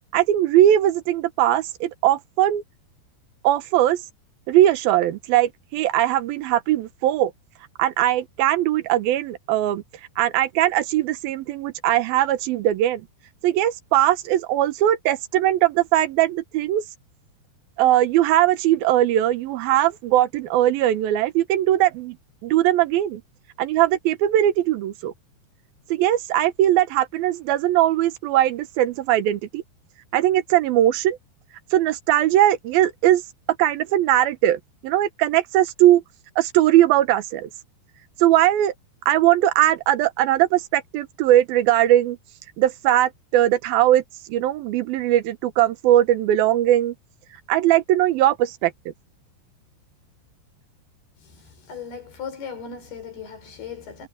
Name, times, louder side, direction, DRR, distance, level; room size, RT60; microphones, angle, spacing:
voice 1, 0.1-2.6 3.4-4.0 4.5-7.3 7.8-9.8 10.2-13.1 13.4-16.8 17.8-22.2 22.4-23.2 23.6-25.1 25.9-29.6 30.1-31.2 31.7-33.2 33.6-36.0 36.4-37.5 38.2-38.7 39.1-42.2 42.6-44.0 44.3-47.0 47.5-48.7, right 13 dB, 70° right, 2.7 m, -20 dB
voice 2, 51.2-54.1, left 6 dB, 65° left, 7.1 m, -37 dB
omnidirectional pair, 4.9 m